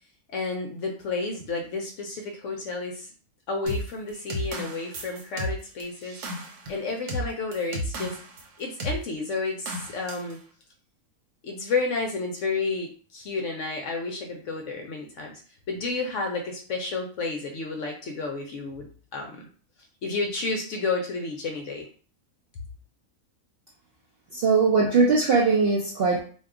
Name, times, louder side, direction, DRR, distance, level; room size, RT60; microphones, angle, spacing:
voice 1, 0.3-3.1 3.5-6.2 6.7-8.2 8.6-10.4 11.4-15.4 15.7-18.9 19.1-19.5 20.0-21.9, left 3 dB, 70° left, 1 dB, 0.8 m, -31 dB
sound 1, 3.7-8.4 8.8-9.0 9.7-10.3, equal, 85° right, 1.2 m, -33 dB
voice 2, 24.3-26.2, right 4 dB, 65° right, -3 dB, 0.6 m, -20 dB
2.7 x 2.2 x 3.6 m, 0.42 s
omnidirectional pair, 1.6 m